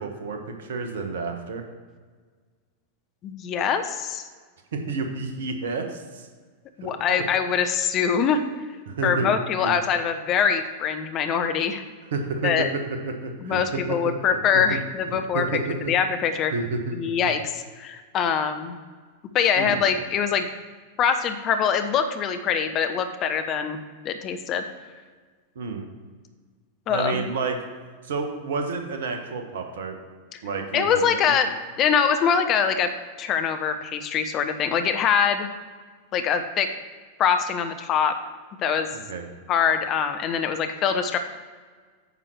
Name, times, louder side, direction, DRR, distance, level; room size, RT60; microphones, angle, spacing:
voice 1, 0.0-1.6 4.7-6.3 6.8-6.9 8.9-9.3 9.6-9.7 12.1-14.4 14.7-14.8 15.1-15.9 16.5-17.3 19.6-19.8 25.5-25.9 26.9-27.6 28.0-30.0 30.4-31.4 38.9-39.2, right 4 dB, 60° right, 5 dB, 1.3 m, -30 dB
voice 2, 3.2-4.2 6.8-8.4 9.0-11.8 12.4-12.7 13.4-15.4 15.9-16.5 16.9-18.8 19.3-20.5 21.0-23.8 24.0-24.6 26.9-27.2 30.3-30.4 30.7-32.9 33.2-35.5 36.1-36.7 37.2-38.1 38.6-38.9 39.5-41.2, left 7 dB, 35° left, 8 dB, 0.8 m, -23 dB
9.1 x 6.0 x 4.7 m, 1.5 s
figure-of-eight pair, 90°, 0 cm